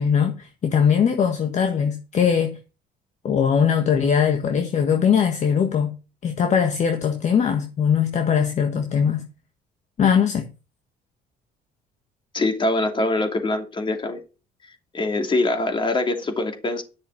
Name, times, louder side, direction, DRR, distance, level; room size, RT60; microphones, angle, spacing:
voice 1, 0.0-2.6 3.2-5.9 6.2-9.3 10.0-10.5, left 7 dB, 45° left, 1.4 m, -20 dB
voice 2, 12.3-14.2 14.9-16.8, left 2 dB, 30° left, 2.8 m, -23 dB
11.0 x 6.5 x 6.0 m
cardioid pair, 110°, 17 cm